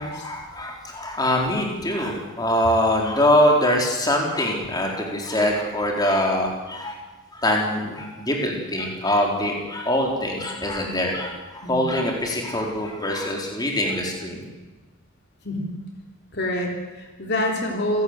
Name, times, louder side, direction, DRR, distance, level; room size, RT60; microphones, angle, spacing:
voice 1, 0.0-7.0 7.3-14.4, left 1 dB, 15° left, 0 dB, 4.1 m, -23 dB
voice 2, 11.6-12.0 15.4-15.7 16.3-18.0, left 1 dB, 50° left, 2 dB, 3.5 m, -27 dB
28.0 x 17.0 x 8.2 m, 1.2 s
head